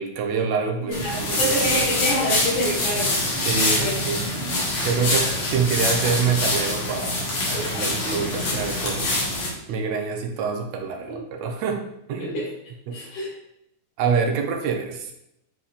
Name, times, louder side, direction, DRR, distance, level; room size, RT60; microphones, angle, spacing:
voice 1, 0.0-1.8 3.4-4.3 4.8-7.3 7.6-9.2 9.7-11.8 12.1-12.4 12.9-13.0 14.0-15.2, right 5 dB, 75° right, 3 dB, 1.9 m, -26 dB
voice 2, 0.8-3.9 4.2-4.5 7.5-7.9 11.1-11.2 12.2-12.5 12.9-13.3, equal, 80° left, -10 dB, 3.9 m, -27 dB
sound 1, 0.9-9.5, left 1 dB, 60° left, 2.8 m, -25 dB
10.0 x 4.6 x 2.5 m, 0.81 s
omnidirectional pair, 3.5 m